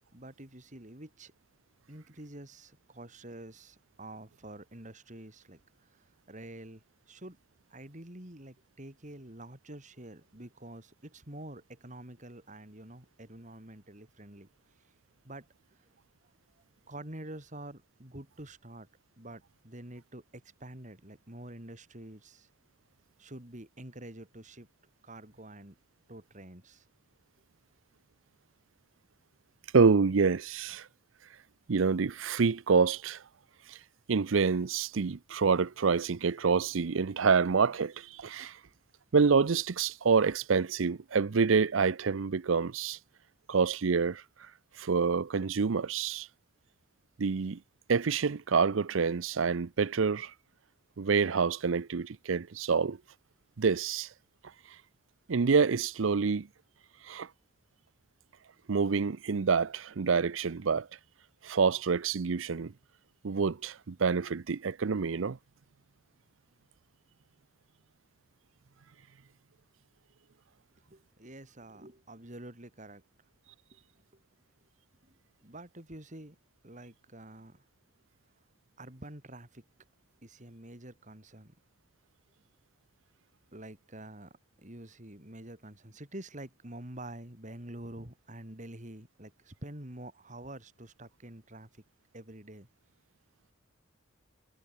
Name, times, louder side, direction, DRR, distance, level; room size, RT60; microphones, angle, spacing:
voice 1, 0.1-1.3 1.9-7.4 7.7-14.5 15.2-15.9 16.9-18.9 19.2-22.5 23.2-24.7 25.0-25.8 26.1-26.9 70.9-73.0 73.7-73.8 74.1-74.2 75.0-75.1 75.4-76.4 76.6-77.7 78.8-79.6 80.2-81.5 83.5-91.8 92.1-92.7, right 1 dB, 40° right, 3.9 m, -47 dB
voice 2, 29.7-30.9 31.7-33.2 33.7-33.8 34.1-38.6 39.1-43.0 43.5-44.2 44.8-46.3 47.2-47.6 47.9-50.3 51.0-53.0 53.6-54.1 55.3-56.5 57.0-57.3 58.7-60.9 61.4-62.7 63.2-65.4, right 5 dB, 85° right, 0.6 m, -27 dB
head